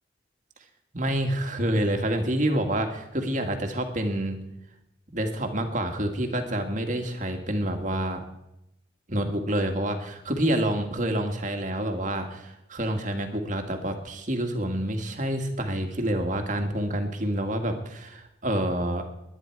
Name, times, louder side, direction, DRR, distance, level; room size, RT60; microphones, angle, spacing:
voice 1, 0.9-4.4 5.1-8.2 9.1-19.0, right 1 dB, 40° right, 5 dB, 1.8 m, -28 dB
21.0 x 10.0 x 4.7 m, 0.87 s
head